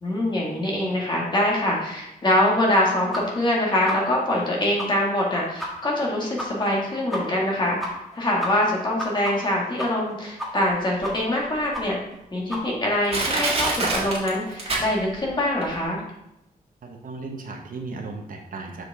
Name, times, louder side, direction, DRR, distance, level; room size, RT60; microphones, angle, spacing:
voice 1, 0.0-7.8 8.1-12.0 12.3-16.0, left 1 dB, 30° left, -3 dB, 1.9 m, -24 dB
sound 1, 3.1-3.2 3.5-3.6 3.9-4.0 4.4-4.5 4.8-4.9 5.2-5.3 5.6-5.7 6.0-6.1 6.4-6.5 6.7-6.8 7.1-7.2 7.5-7.6 7.8-8.2 8.4-10.1 10.4-10.7 11.0-11.4 11.7-11.8 12.1-12.2 12.5-12.6, equal, ahead, 1.5 m, -31 dB
Crushing, 11.0-11.1 11.8-11.9 12.5-12.6 13.1-15.3 15.6-15.7, right 2 dB, 40° right, 1.8 m, -25 dB
voice 2, 16.8-18.8, right 3 dB, 65° right, 2 dB, 1.0 m, -36 dB
6.5 x 5.0 x 3.6 m, 0.85 s
wide cardioid pair, 125°, 15 cm